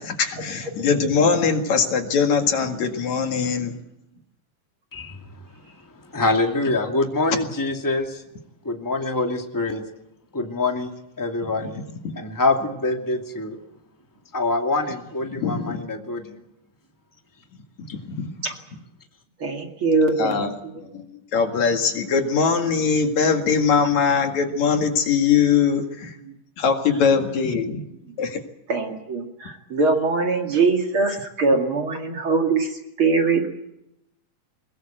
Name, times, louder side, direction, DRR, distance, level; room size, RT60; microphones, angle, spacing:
voice 1, 0.0-3.7 11.6-12.0 15.4-15.8 17.8-18.4 20.2-20.5 20.9-26.2 26.6-27.8 28.2-28.4, left 6 dB, 60° left, 6 dB, 3.1 m, -22 dB
voice 2, 6.1-8.2 8.6-9.8 10.3-10.9 11.2-11.8 12.2-13.6 14.3-16.4, left 2 dB, 5° left, 3 dB, 2.0 m, -25 dB
voice 3, 19.4-21.0 25.7-25.8 26.2-26.4 27.0-27.1 28.1-28.2 28.7-33.5, right 4 dB, 40° right, 4 dB, 2.7 m, -23 dB
21.5 x 21.5 x 7.9 m, 0.86 s
omnidirectional pair, 3.8 m